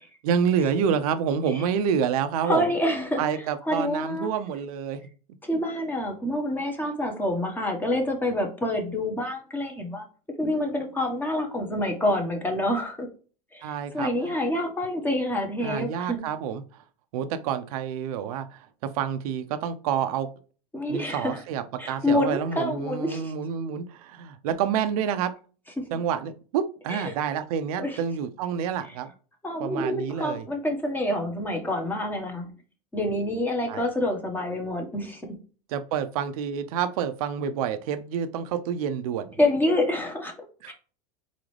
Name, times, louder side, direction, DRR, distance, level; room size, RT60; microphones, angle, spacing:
voice 1, 0.2-2.7 3.2-5.0 13.6-14.4 15.6-16.6 17.1-20.3 20.9-25.3 25.9-29.1 29.6-30.4 33.7-33.8 35.7-39.4, right 8 dB, 70° right, 10 dB, 0.8 m, -28 dB
voice 2, 2.4-4.3 5.4-10.1 10.4-13.1 13.5-16.2 20.7-21.4 21.8-23.3 25.8-25.9 26.9-27.1 27.8-28.0 28.8-28.9 29.4-32.5 32.9-35.2 39.4-40.3 40.7-40.8, left 1 dB, 10° left, 2 dB, 1.3 m, -27 dB
4.1 x 3.9 x 3.3 m, 0.38 s
supercardioid pair, 125°, 19 cm